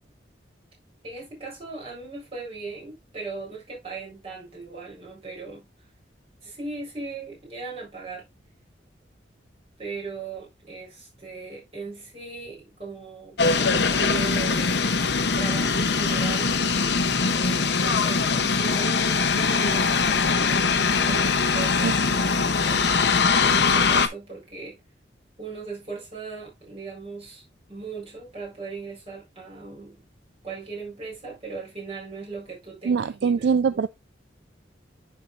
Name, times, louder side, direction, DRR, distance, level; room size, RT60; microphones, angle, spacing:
voice 1, 1.0-5.6 6.4-8.3 9.8-16.6 17.3-23.0 23.4-24.8 25.4-27.4 27.7-30.0 30.4-33.8, right 4 dB, 30° right, 4.3 m, -38 dB
sound 1, 13.4-24.1, left 4 dB, 65° left, 0.8 m, -22 dB
voice 2, 32.9-33.9, right 5 dB, 65° right, 0.3 m, -22 dB
11.5 x 4.6 x 2.5 m
head